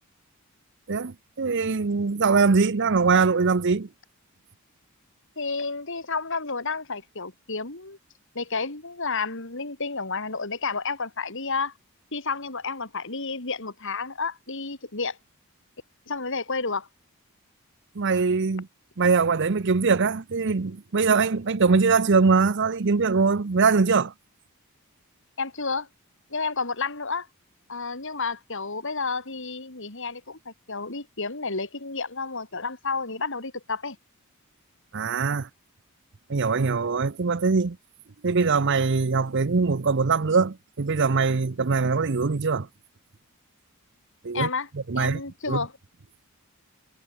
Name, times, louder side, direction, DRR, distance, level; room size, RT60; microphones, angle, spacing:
voice 1, 0.9-3.9 17.9-18.7 19.0-24.1 34.9-35.5 36.3-37.8 38.2-42.7 44.2-44.5 44.7-45.2 45.5-45.7, right 4 dB, 55° right, 0.7 m, -22 dB
voice 2, 5.4-8.0 8.4-11.7 12.1-15.2 16.1-16.9 25.4-25.9 26.3-27.3 27.7-34.0 44.3-44.7 45.0-45.7, left 4 dB, 60° left, 3.5 m, -31 dB
head